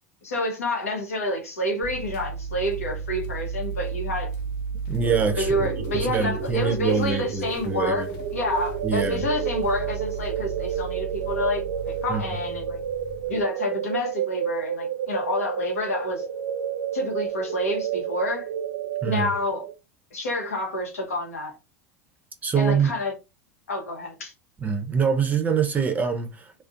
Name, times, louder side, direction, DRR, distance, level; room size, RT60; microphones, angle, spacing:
voice 1, 0.2-4.3 5.4-12.8 13.3-16.3 16.9-18.5 19.0-19.6 20.1-21.6 22.6-23.1 23.7-24.3, left 1 dB, 90° left, 0.8 m, -28 dB
sound 1, 1.8-13.4, right 5 dB, 60° left, 0.6 m, -35 dB
voice 2, 4.9-5.7 5.9-8.1 8.8-9.3 12.1-12.2 19.0-19.3 22.4-22.9 24.6-26.5, right 6 dB, 20° right, 0.5 m, -24 dB
sound 2, 5.0-19.7, right 8 dB, 80° right, 0.4 m, -31 dB
2.4 x 2.1 x 2.5 m
hypercardioid pair, 95°, 8 cm